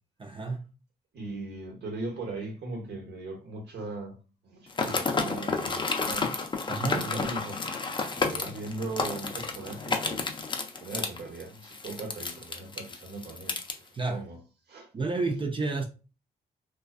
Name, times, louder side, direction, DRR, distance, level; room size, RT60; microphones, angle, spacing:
voice 1, 0.2-0.6 6.7-7.1 13.9-14.2 14.9-15.8, right 3 dB, 30° right, 0.4 m, -30 dB
voice 2, 1.1-4.2 4.4-6.3 6.9-7.8 8.1-10.2 10.8-14.4 14.7-14.9 15.2-15.3, right 2 dB, 70° right, 1.0 m, -39 dB
sound 1, 4.7-13.7, left 4 dB, 25° left, 0.5 m, -31 dB
2.4 x 2.3 x 2.3 m
supercardioid pair, 55°, 18 cm